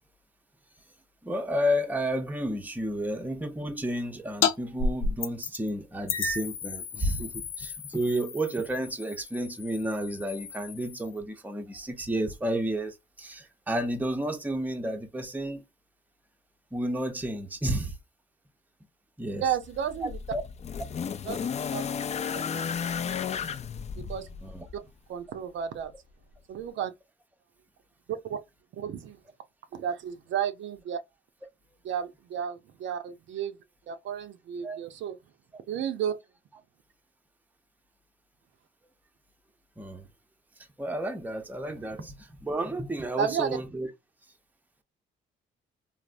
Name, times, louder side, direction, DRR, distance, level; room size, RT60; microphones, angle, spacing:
voice 1, 1.2-15.6 16.7-18.0 19.2-19.4 20.0-20.4 24.4-24.7 34.6-34.8 39.8-40.1 40.8-43.9, right 1 dB, 10° right, 0.6 m, -31 dB
sound 1, 4.4-4.5 4.8-5.7 6.1-11.2, left 5 dB, 85° left, 0.6 m, -32 dB
voice 2, 19.4-20.2 21.3-21.8 24.0-24.3 25.1-25.9 26.5-26.9 28.1-28.4 28.7-29.2 29.7-31.0 31.8-33.6 33.9-35.2 35.7-36.2 43.2-43.6, right 8 dB, 70° right, 0.6 m, -32 dB
sound 2, 19.6-24.8 25.9-26.0, left 7 dB, 35° left, 0.4 m, -33 dB
3.3 x 2.0 x 2.5 m
cardioid pair, 90°, 20 cm